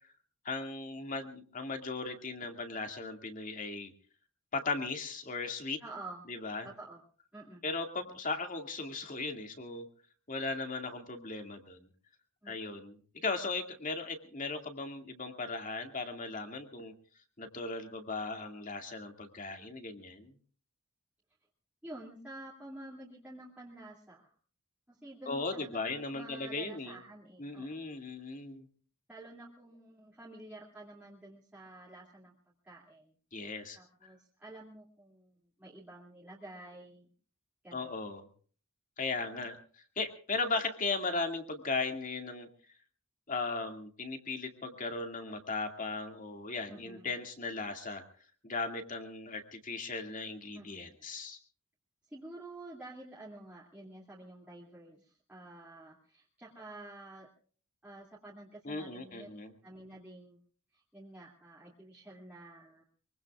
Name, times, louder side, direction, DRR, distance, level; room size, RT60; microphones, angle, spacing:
voice 1, 0.4-3.9 4.5-5.8 6.3-6.7 7.6-9.9 10.3-11.8 12.5-16.9 17.4-20.3 25.3-27.0 27.4-28.7 33.3-34.1 37.7-38.3 39.0-39.6 40.0-42.5 43.3-48.0 48.4-51.4 58.6-59.5, left 3 dB, 35° left, 5 dB, 2.2 m, -37 dB
voice 2, 5.8-6.2 6.6-7.0 7.3-7.6 12.4-12.6 21.8-24.3 24.9-27.8 29.1-32.3 32.6-33.1 33.4-37.1 37.6-38.0 46.7-47.1 50.5-51.1 52.1-57.3 57.8-59.3 59.6-60.4 60.7-62.8, right 2 dB, 5° right, -6 dB, 2.5 m, -50 dB
24.0 x 23.5 x 2.4 m, 0.44 s
head